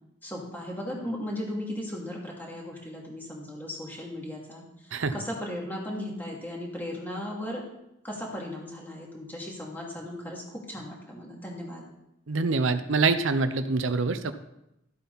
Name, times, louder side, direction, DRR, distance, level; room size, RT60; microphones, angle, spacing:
voice 1, 0.2-4.6 5.1-7.6 8.0-11.8, left 1 dB, 10° left, -3 dB, 2.6 m, -36 dB
voice 2, 12.3-14.3, right 4 dB, 90° right, 10 dB, 0.7 m, -25 dB
13.0 x 8.2 x 4.1 m, 0.85 s
head